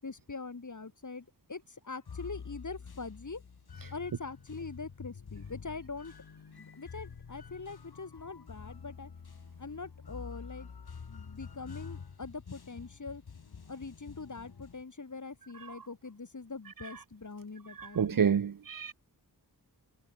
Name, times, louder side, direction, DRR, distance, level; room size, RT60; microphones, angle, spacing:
voice 1, 0.0-3.4 3.9-6.1 6.6-9.1 9.6-10.7 11.1-13.2 13.7-18.3, left 4 dB, 50° left, 5.4 m, -43 dB
sound 1, 2.1-14.8, left 6 dB, 70° left, 3.4 m, -48 dB
voice 2, 17.8-18.9, right 7 dB, 55° right, 0.9 m, -29 dB
wide cardioid pair, 80°, 39 cm